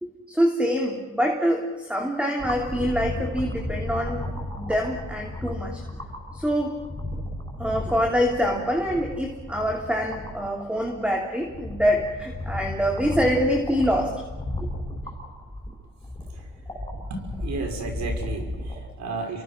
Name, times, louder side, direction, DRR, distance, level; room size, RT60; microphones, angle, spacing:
voice 1, 0.0-4.2 4.5-5.8 6.3-6.8 7.6-14.1 14.6-14.7, equal, 5° right, 1 dB, 3.1 m, -25 dB
sound 1, 2.4-18.8, left 2 dB, 15° left, 7.6 m, -34 dB
voice 2, 17.0-19.4, right 4 dB, 65° right, 4 dB, 6.2 m, -33 dB
29.5 x 23.5 x 6.1 m, 1.2 s
cardioid pair, 90°, 30 cm